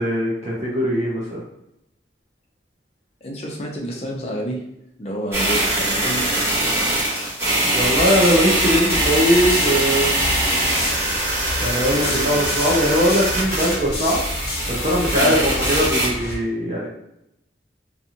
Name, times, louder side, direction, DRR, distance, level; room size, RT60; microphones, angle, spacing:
voice 1, 0.0-1.4 7.6-10.1 11.6-14.2 14.7-16.9, equal, 35° right, -5 dB, 0.5 m, -20 dB
voice 2, 3.2-4.6 5.0-6.3 11.7-12.8 15.2-15.4, right 1 dB, 35° left, -1 dB, 0.5 m, -30 dB
sound 1, 5.3-16.1, right 1 dB, 15° right, 1.0 m, -22 dB
sound 2, 7.8-16.4, left 1 dB, 55° left, 0.9 m, -30 dB
2.5 x 2.4 x 2.8 m, 0.83 s
head